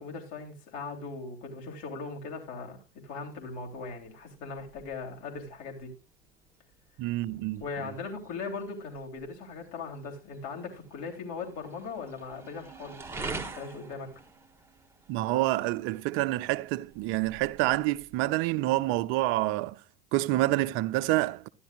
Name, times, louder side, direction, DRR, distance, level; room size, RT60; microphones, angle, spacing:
voice 1, 0.0-5.9 7.2-14.1, left 4 dB, 50° left, 3.3 m, -39 dB
sound 1, 3.3-18.8, right 3 dB, 10° right, 1.2 m, -47 dB
voice 2, 7.0-7.6 15.1-19.7 20.1-21.5, right 17 dB, 40° right, 0.6 m, -27 dB
13.0 x 11.0 x 2.4 m
figure-of-eight pair, 80°, 31 cm